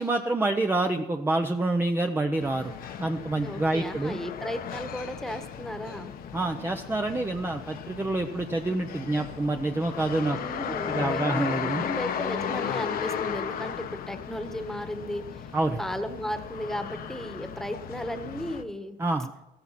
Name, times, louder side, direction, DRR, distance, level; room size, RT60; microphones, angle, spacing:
voice 1, 0.0-2.7 3.0-4.2 6.3-10.4 10.7-11.8 15.5-15.8 19.0-19.3, right 2 dB, 15° right, 5 dB, 0.8 m, -27 dB
sound 1, 2.4-18.6, left 8 dB, 60° left, 1.2 m, -35 dB
voice 2, 3.4-6.1 10.3-15.5 15.8-19.0, equal, ahead, 8 dB, 1.5 m, -35 dB
14.5 x 14.5 x 4.3 m, 0.99 s
cardioid pair, 110°, 17 cm